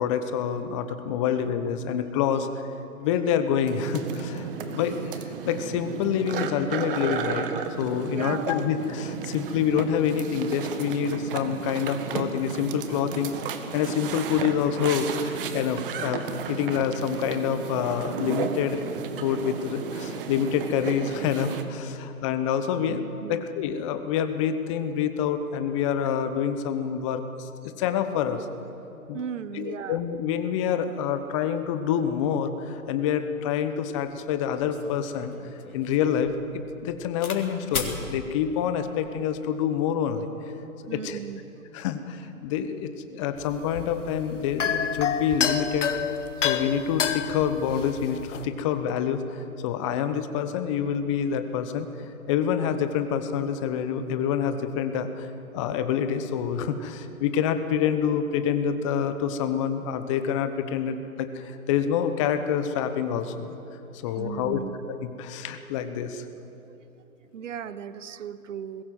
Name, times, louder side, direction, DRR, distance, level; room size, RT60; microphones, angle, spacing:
voice 1, 0.0-2.6 3.0-7.5 7.8-13.3 13.7-18.8 19.2-28.5 29.1-29.2 29.5-35.3 35.7-40.3 40.9-41.2 41.7-45.9 46.4-51.9 52.3-55.3 55.5-63.5 64.0-64.6 65.0-66.2, left 8 dB, 20° left, 10 dB, 1.1 m, -27 dB
sound 1, 3.7-21.6, right 6 dB, 35° right, 1.7 m, -33 dB
voice 2, 8.1-8.5 22.9-23.5 29.1-30.0 40.9-41.4 64.2-64.8 66.7-66.8 67.3-68.8, right 8 dB, 55° right, 14 dB, 1.1 m, -36 dB
sound 2, 34.1-34.2 34.6-37.4 37.7-38.0 38.8-39.2, left 4 dB, 70° left, 3.7 m, -37 dB
sound 3, 43.4-48.4, left 7 dB, 55° left, 1.5 m, -29 dB
21.0 x 17.0 x 7.8 m, 3.0 s
hypercardioid pair, 140°, 43 cm